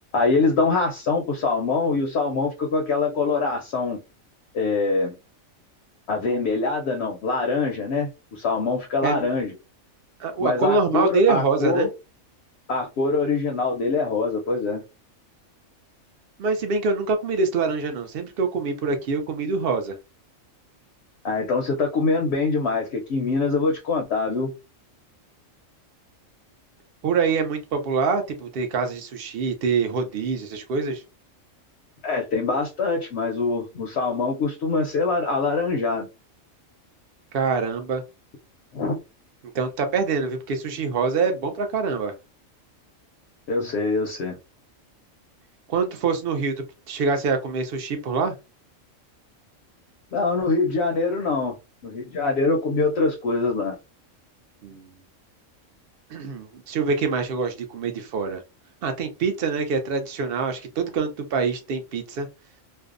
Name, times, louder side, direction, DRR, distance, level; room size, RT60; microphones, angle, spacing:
voice 1, 0.1-4.0 4.5-5.1 6.1-9.5 10.4-11.9 12.7-14.8 21.2-24.5 32.0-36.1 38.7-39.0 43.5-44.4 50.1-51.6 51.8-53.8, left 3 dB, 65° left, 0.7 m, -24 dB
voice 2, 10.2-11.9 16.4-20.0 27.0-31.0 37.3-38.0 39.5-42.1 45.7-48.3 54.6-54.9 56.1-58.4 58.8-62.3, right 4 dB, 60° right, 0.6 m, -25 dB
2.5 x 2.1 x 2.4 m
omnidirectional pair, 1.4 m